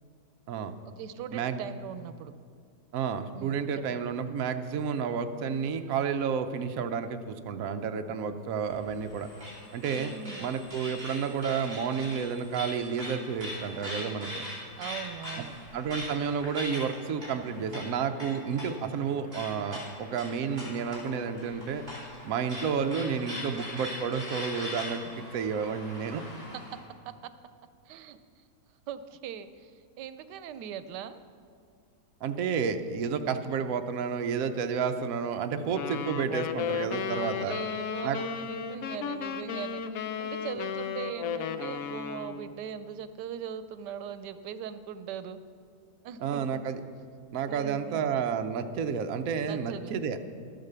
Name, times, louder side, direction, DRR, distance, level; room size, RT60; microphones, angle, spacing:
voice 1, 1.0-2.3 3.3-4.0 9.9-10.5 14.8-15.6 26.5-27.3 27.9-28.4 28.9-31.2 37.3-45.4 46.0-46.6 47.5-48.1 49.4-49.9, right 8 dB, 90° right, 12 dB, 1.2 m, -40 dB
voice 2, 2.9-9.3 9.7-10.1 10.4-14.5 15.4-15.5 15.7-21.8 22.2-26.2 32.2-37.6 38.0-38.2 46.2-46.8 47.3-50.2, right 6 dB, 65° right, 7 dB, 1.0 m, -31 dB
sound 1, 8.6-26.8, left 1 dB, 25° right, 3.7 m, -41 dB
sound 2, 35.7-42.5, left 7 dB, 65° left, 1.0 m, -34 dB
12.5 x 8.9 x 6.7 m, 2.2 s
omnidirectional pair, 1.8 m